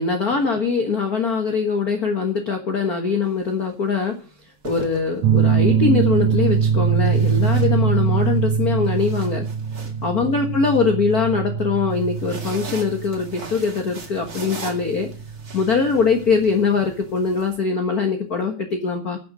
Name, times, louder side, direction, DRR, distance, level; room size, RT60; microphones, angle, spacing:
voice 1, 0.0-4.2 4.6-9.5 10.0-15.1 15.5-19.2, left 5 dB, 45° left, 4 dB, 1.3 m, -22 dB
sound 1, 3.2-3.5 4.4-5.6 7.0-8.3 8.7-10.8 11.9-17.6, right 4 dB, 35° right, 2.2 m, -40 dB
sound 2, 5.2-16.4, right 6 dB, 75° right, 2.2 m, -22 dB
12.0 x 6.9 x 9.6 m, 0.40 s
omnidirectional pair, 3.4 m